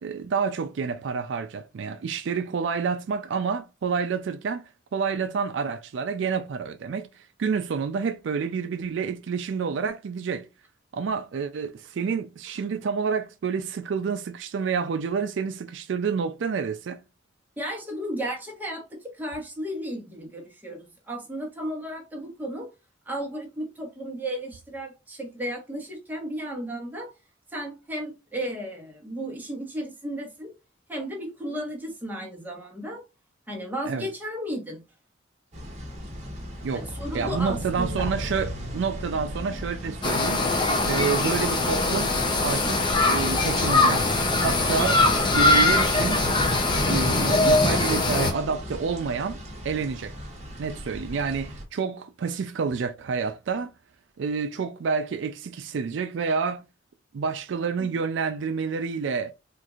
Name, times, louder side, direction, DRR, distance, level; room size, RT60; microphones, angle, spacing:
voice 1, 0.0-4.6 4.9-10.5 10.9-17.0 33.9-34.1 36.6-36.9 37.1-40.4 40.9-42.1 42.4-44.1 44.4-45.1 45.3-46.2 46.9-50.1 50.6-53.7 54.2-56.6 57.1-59.3, right 5 dB, 70° right, 0.4 m, -29 dB
voice 2, 17.6-22.7 23.0-27.1 27.5-30.5 30.9-33.0 33.5-34.8 36.7-38.1 57.8-57.9, equal, 10° right, 1.1 m, -34 dB
sound 1, 35.5-51.6, equal, 40° right, 1.3 m, -36 dB
sound 2, 40.0-48.3, left 2 dB, 25° left, 0.6 m, -22 dB
4.4 x 2.5 x 2.4 m
head